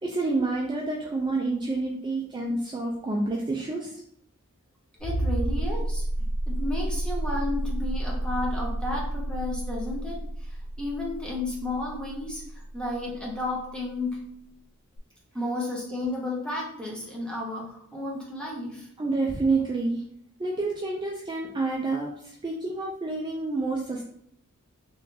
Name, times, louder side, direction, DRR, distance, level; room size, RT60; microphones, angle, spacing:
voice 1, 0.0-4.0 19.0-20.0 20.4-24.0, right 3 dB, 20° right, -2 dB, 0.3 m, -28 dB
sound 1, 5.0-13.5 15.0-15.1, right 1 dB, 50° left, 0.4 m, -30 dB
voice 2, 5.0-6.0 6.5-14.2 15.3-18.9, left 2 dB, 5° left, -3 dB, 0.7 m, -32 dB
3.6 x 3.1 x 2.7 m, 0.67 s
head